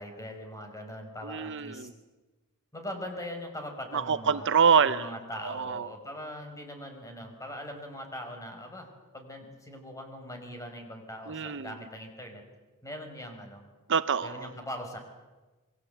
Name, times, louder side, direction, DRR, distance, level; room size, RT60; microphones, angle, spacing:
voice 1, 0.0-1.9 2.7-4.5 4.9-8.9 9.1-12.4 12.8-13.6 14.2-15.0, equal, 15° left, 4 dB, 5.2 m, -41 dB
voice 2, 1.2-1.9 3.9-5.1 5.4-5.9 11.3-11.7 13.9-14.5, right 6 dB, 55° right, 13 dB, 0.8 m, -26 dB
27.0 x 21.5 x 8.1 m, 1.2 s
head